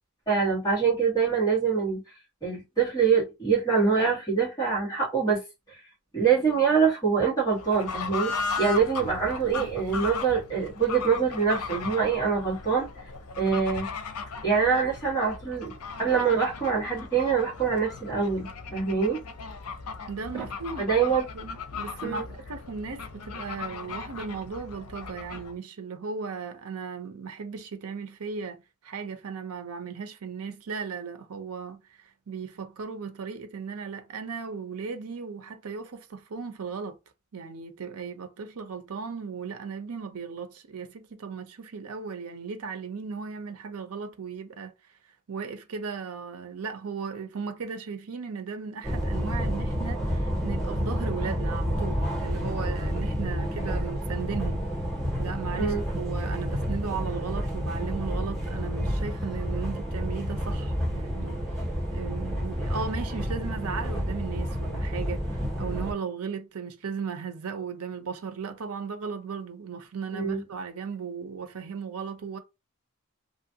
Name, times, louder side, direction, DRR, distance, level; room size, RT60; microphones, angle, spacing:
voice 1, 0.3-2.0 2.4-5.4 6.1-12.9 13.4-13.9 14.4-15.7 16.0-19.2 20.3-20.4 20.8-21.2 22.0-22.2 55.6-55.8 70.1-70.4, right 6 dB, 15° left, 1.7 m, -24 dB
Fowl / Bird, 7.5-25.6, left 5 dB, 90° left, 0.6 m, -37 dB
voice 2, 20.1-20.9 21.3-37.0 37.3-44.7 45.3-54.6 55.2-61.4 61.9-72.4, right 5 dB, 80° right, 0.6 m, -36 dB
sound 1, 48.8-65.9, equal, ahead, 1.5 m, -30 dB
3.0 x 2.4 x 2.7 m
head